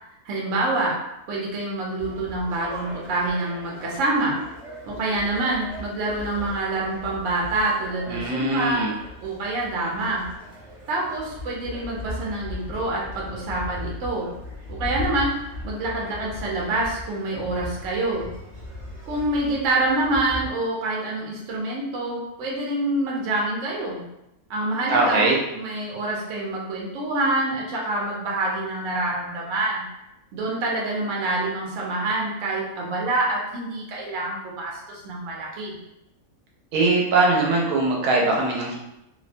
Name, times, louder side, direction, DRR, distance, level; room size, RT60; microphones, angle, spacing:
voice 1, 0.2-1.0 1.3-4.4 4.9-8.8 9.2-10.2 10.9-14.3 14.7-15.3 15.6-18.3 19.1-24.0 24.5-29.9 30.3-35.7, right 2 dB, 65° right, -3 dB, 1.0 m, -26 dB
sound 1, 2.0-20.5, left 2 dB, 35° right, 0.6 m, -38 dB
voice 2, 8.1-8.9 24.9-25.4 36.7-38.8, right 3 dB, 85° right, -2 dB, 1.1 m, -21 dB
2.8 x 2.1 x 2.5 m, 0.88 s
omnidirectional pair, 1.5 m